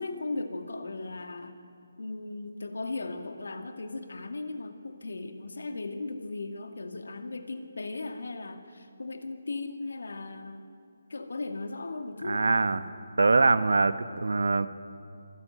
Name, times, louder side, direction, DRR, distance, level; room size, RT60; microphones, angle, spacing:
voice 1, 0.0-1.5 2.0-10.7 11.1-12.6, left 3 dB, 80° left, 6 dB, 2.1 m, -37 dB
voice 2, 12.2-12.8 13.2-14.7, right 3 dB, 80° right, 12 dB, 1.1 m, -23 dB
25.5 x 13.0 x 9.1 m, 2.4 s
figure-of-eight pair, 155°, 0 cm